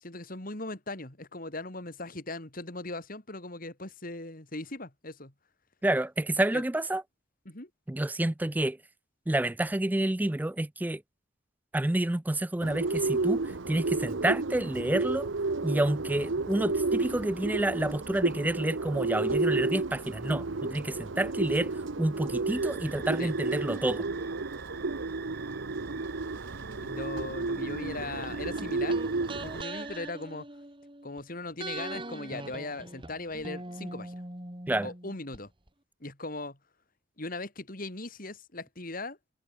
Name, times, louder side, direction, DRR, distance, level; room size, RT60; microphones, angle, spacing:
voice 1, 0.0-5.3 6.5-6.6 7.4-7.7 23.2-23.4 26.6-29.0 29.3-30.5 31.0-34.2 34.8-35.5 36.0-36.6 37.2-39.2, left 2 dB, 45° left, 3.1 m, -39 dB
voice 2, 5.8-7.0 7.9-8.8 9.3-11.0 11.7-15.3 15.6-21.7 22.0-24.1 34.7-34.9, right 1 dB, 10° right, 0.4 m, -29 dB
Bird, 12.6-29.6, right 3 dB, 70° right, 0.9 m, -32 dB
sound 1, 22.5-30.1, right 8 dB, 50° right, 2.0 m, -47 dB
sound 2, 28.2-31.2 31.6-35.4 35.7-35.8, right 2 dB, 25° right, 4.0 m, -42 dB
head